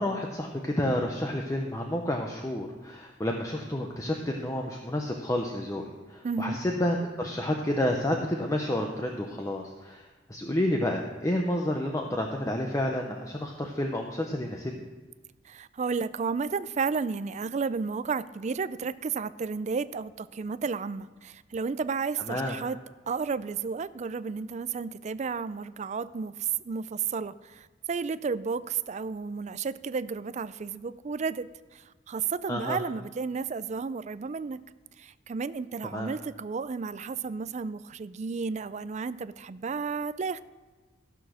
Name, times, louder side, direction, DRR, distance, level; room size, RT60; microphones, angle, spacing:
voice 1, 0.0-14.8 22.3-22.5 32.5-32.8 35.9-36.1, left 1 dB, 20° left, 2 dB, 0.8 m, -30 dB
voice 2, 6.2-6.6 15.4-22.8 23.1-34.6 35.0-40.4, right 5 dB, 40° right, 15 dB, 0.4 m, -32 dB
14.5 x 6.3 x 6.3 m, 1.3 s
head